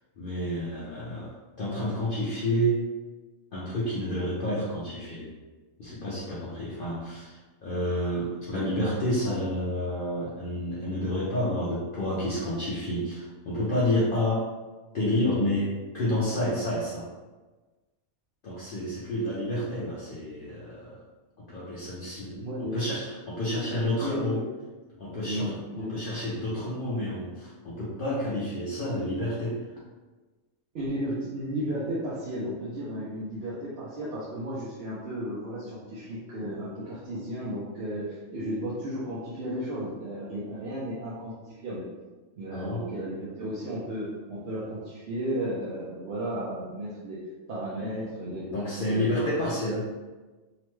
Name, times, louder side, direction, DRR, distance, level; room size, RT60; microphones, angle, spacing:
voice 1, 0.2-2.8 3.5-5.3 5.8-14.5 14.9-17.1 18.4-21.0 21.5-22.5 22.7-24.4 25.0-29.6 42.5-42.9 48.4-49.8, left 1 dB, 55° left, -8 dB, 0.6 m, -29 dB
voice 2, 22.3-22.8 23.4-24.4 25.2-26.0 30.7-41.8 42.4-47.2 47.5-48.5 48.8-49.3, equal, 60° right, -8 dB, 0.7 m, -34 dB
2.9 x 2.1 x 3.0 m, 1.2 s
omnidirectional pair, 1.4 m